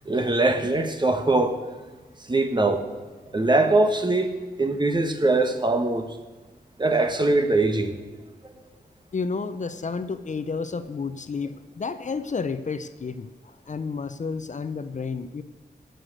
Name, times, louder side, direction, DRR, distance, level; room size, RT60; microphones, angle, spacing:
voice 1, 0.1-1.6 2.3-2.8 3.3-4.3 4.6-6.1 6.8-8.0, right 2 dB, 25° right, 7 dB, 1.3 m, -22 dB
voice 2, 9.1-15.4, left 4 dB, 45° left, 11 dB, 0.7 m, -31 dB
17.0 x 7.8 x 6.6 m, 1.3 s
wide cardioid pair, 125°, 17 cm